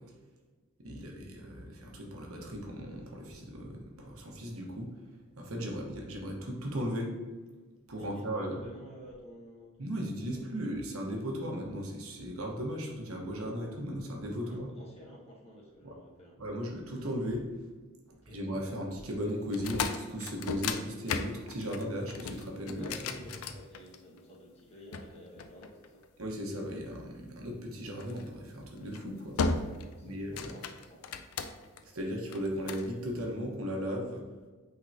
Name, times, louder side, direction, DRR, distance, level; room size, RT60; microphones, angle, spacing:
voice 1, 0.8-4.9 5.4-7.1 7.9-8.6 9.8-14.7 15.8-15.9 16.4-17.5 18.3-22.9 26.2-29.4 30.0-30.5 31.8-34.2, equal, 80° right, 0 dB, 1.2 m, -36 dB
voice 2, 8.0-10.0 10.5-10.6 14.4-16.4 18.1-18.4 22.7-26.1 29.8-31.2, equal, 30° left, -5 dB, 1.5 m, -52 dB
sound 1, 19.5-24.2 24.9-26.2 28.0-28.3 28.8-29.0 29.4-29.9 30.2-31.8 32.3-32.9, left 4 dB, 80° left, 0.5 m, -35 dB
8.9 x 3.9 x 2.8 m, 1.3 s
head